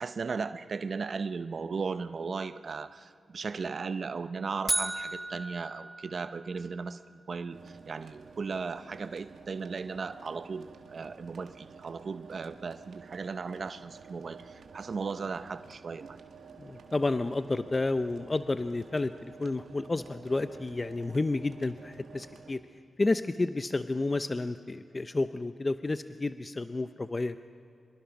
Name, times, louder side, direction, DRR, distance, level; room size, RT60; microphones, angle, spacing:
voice 1, 0.0-16.2, right 4 dB, 65° right, 11 dB, 0.7 m, -36 dB
sound 1, 4.7-6.8, right 2 dB, 20° right, 1.2 m, -34 dB
sound 2, 7.5-22.5, right 5 dB, 85° right, 1.7 m, -51 dB
voice 2, 16.6-22.6 23.0-27.4, left 2 dB, 35° left, 11 dB, 0.6 m, -31 dB
25.0 x 22.5 x 6.0 m, 2.4 s
cardioid pair, 55°, 0 cm